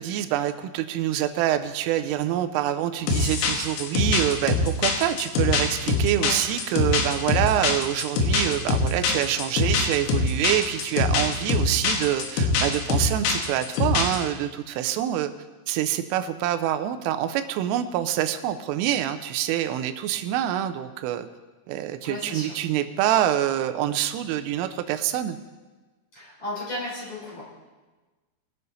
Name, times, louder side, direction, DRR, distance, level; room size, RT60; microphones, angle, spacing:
voice 1, 0.0-15.3 15.7-21.3 21.7-25.4, right 12 dB, 85° right, 9 dB, 3.1 m, -26 dB
sound 1, 3.1-14.2, left 3 dB, 90° left, 4.0 m, -23 dB
voice 2, 22.0-22.6 26.1-27.4, left 1 dB, 30° left, -7 dB, 4.6 m, -34 dB
21.5 x 7.6 x 4.0 m, 1.3 s
omnidirectional pair, 5.8 m